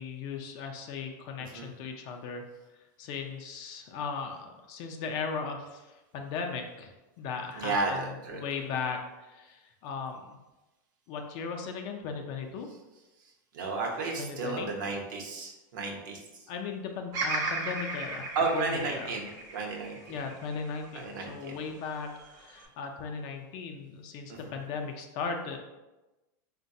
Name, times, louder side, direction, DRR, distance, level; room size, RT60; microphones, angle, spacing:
voice 1, 0.0-2.4 3.0-5.9 6.1-10.4 11.1-12.7 14.2-14.7 16.5-19.1 20.1-25.6, left 5 dB, 40° left, 4 dB, 0.4 m, -37 dB
voice 2, 7.6-8.4 13.5-16.2 18.3-19.3 19.5-20.2 20.9-21.6 24.3-24.6, right 3 dB, 75° right, 1 dB, 0.8 m, -33 dB
Bird vocalization bird call bird song, 17.1-21.4 21.9-22.7, right 3 dB, 35° right, 0.5 m, -36 dB
3.8 x 2.2 x 2.6 m, 1.1 s
supercardioid pair, 150°, 10 cm